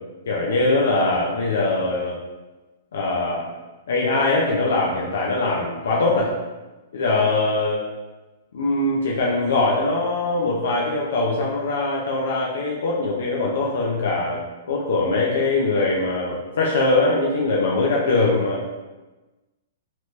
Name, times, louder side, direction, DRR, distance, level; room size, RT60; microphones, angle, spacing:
voice 1, 0.3-2.2 2.9-3.5 3.9-6.3 6.9-7.8 8.5-14.4 14.7-18.6, left 2 dB, 75° left, -3 dB, 0.6 m, -22 dB
3.1 x 2.9 x 3.1 m, 1.1 s
hypercardioid pair, 135°, 0 cm